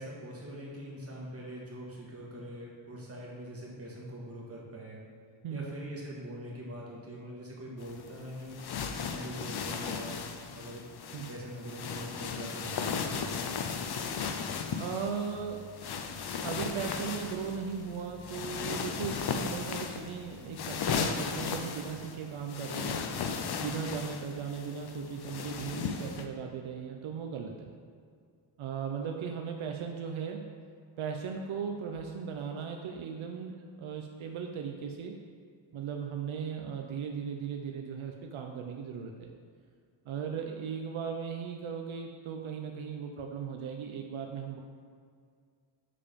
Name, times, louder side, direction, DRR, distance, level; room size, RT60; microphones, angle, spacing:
voice 1, 0.0-5.0 5.5-10.2 10.5-10.9 11.3-13.3, equal, 30° right, -4 dB, 1.3 m, -43 dB
sound 1, 7.8-26.2, left 6 dB, 55° left, 0.5 m, -36 dB
voice 2, 14.8-15.7 16.4-27.7 28.6-30.5 31.0-35.2 35.7-39.3 40.1-44.6, right 6 dB, 80° right, 3 dB, 0.6 m, -37 dB
6.8 x 3.6 x 5.1 m, 2.1 s
wide cardioid pair, 150°, 48 cm